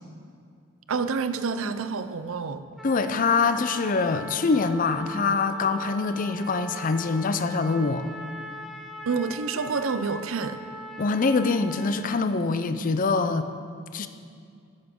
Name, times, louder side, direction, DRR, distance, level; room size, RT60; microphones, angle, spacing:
voice 1, 0.9-2.6 9.1-10.6, right 5 dB, 75° right, 11 dB, 0.5 m, -28 dB
voice 2, 2.8-8.0 11.0-13.5 13.9-14.1, left 4 dB, 40° left, 10 dB, 0.5 m, -24 dB
Trumpet, 2.8-12.3, equal, ahead, 0.7 m, -41 dB
12.5 x 9.8 x 3.7 m, 2.3 s
head